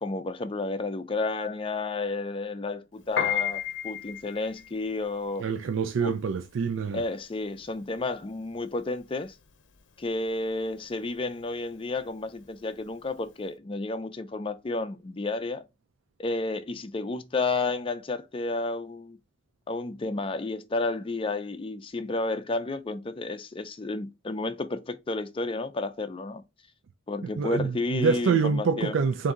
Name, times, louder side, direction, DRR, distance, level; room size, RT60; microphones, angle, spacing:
voice 1, 0.0-5.4 6.0-6.1 6.9-9.3 10.0-15.6 16.2-19.2 19.7-26.4 27.1-29.0, left 3 dB, 25° left, 0.4 m, -31 dB
Piano, 3.0-13.4, left 9 dB, 65° left, 0.6 m, -35 dB
voice 2, 5.4-7.0 27.4-29.3, right 5 dB, 75° right, 0.4 m, -26 dB
4.0 x 2.6 x 3.6 m
head